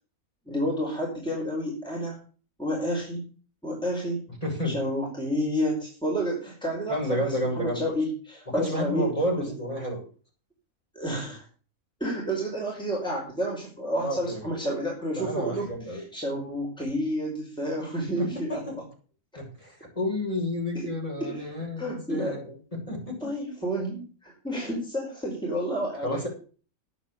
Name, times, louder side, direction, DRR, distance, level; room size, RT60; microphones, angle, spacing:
voice 1, 0.5-2.2 2.6-3.2 3.6-4.2 4.6-9.1 9.4-9.5 10.9-11.4 12.0-18.6 20.7-20.9 21.2-21.5 21.8-22.4 23.2-26.3, equal, 5° left, -3 dB, 5.2 m, -30 dB
voice 2, 4.4-4.8 6.9-7.8 8.5-10.0 14.0-14.4 15.2-16.0 18.2-18.8 19.4-23.2 26.0-26.3, left 1 dB, 25° left, -2 dB, 7.0 m, -30 dB
11.0 x 9.7 x 6.8 m, 0.39 s
omnidirectional pair, 1.5 m